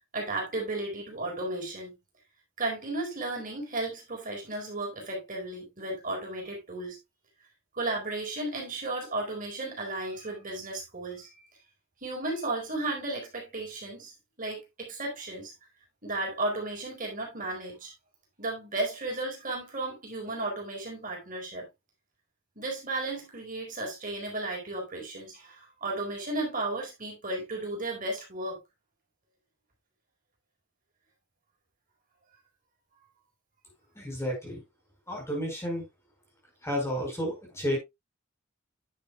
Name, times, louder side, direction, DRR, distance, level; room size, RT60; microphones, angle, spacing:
voice 1, 0.1-2.0 2.6-7.0 7.7-11.3 12.0-15.5 16.0-17.9 18.4-21.7 22.6-28.6, right 2 dB, 40° right, 4.4 m, -34 dB
voice 2, 33.9-34.6 35.1-35.8 36.6-37.8, equal, 15° left, 4.9 m, -31 dB
10.0 x 8.7 x 2.3 m
head